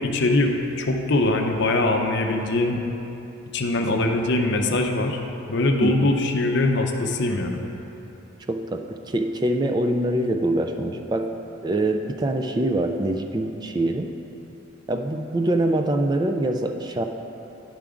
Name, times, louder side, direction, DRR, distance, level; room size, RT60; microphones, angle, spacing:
voice 1, 0.0-2.8 3.5-5.2 5.5-7.6, left 2 dB, 55° left, 3 dB, 0.6 m, -22 dB
voice 2, 5.8-6.1 8.5-11.4 11.6-14.1 14.9-17.0, right 1 dB, 20° right, 5 dB, 0.3 m, -24 dB
10.5 x 3.6 x 5.0 m, 3.0 s
head